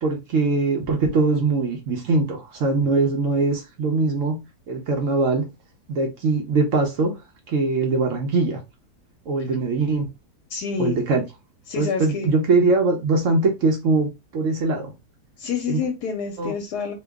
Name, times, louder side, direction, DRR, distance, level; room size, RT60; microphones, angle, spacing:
voice 1, 0.0-4.4 4.7-5.5 5.9-7.1 7.5-8.6 9.3-10.1 10.8-11.2 11.8-14.9 15.7-15.8 16.4-16.5, right 3 dB, 65° right, 0.9 m, -22 dB
voice 2, 10.5-11.0 11.7-12.3 15.4-16.9, left 6 dB, 80° left, 1.2 m, -28 dB
3.1 x 2.2 x 3.4 m
omnidirectional pair, 1.8 m